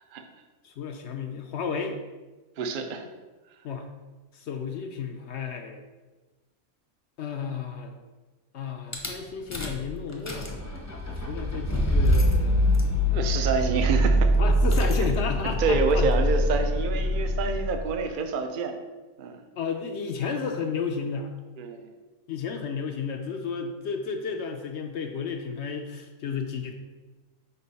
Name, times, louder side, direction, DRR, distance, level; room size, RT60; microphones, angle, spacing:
voice 1, 0.6-2.0 3.6-3.9 4.3-5.8 7.2-7.9 8.5-10.7 11.2-12.6 14.4-16.1 19.6-21.3 22.3-26.7, left 6 dB, 65° left, 5 dB, 0.7 m, -32 dB
voice 2, 2.6-3.0 13.1-14.3 15.0-15.1 15.6-18.8 19.2-19.4 21.6-21.9, right 4 dB, 55° right, 7 dB, 0.6 m, -27 dB
Rattle / Car / Engine starting, 8.9-9.1 9.5-9.8 10.1-17.9, equal, 15° left, 0.6 m, -24 dB
5.6 x 5.1 x 4.0 m, 1.2 s
omnidirectional pair, 1.5 m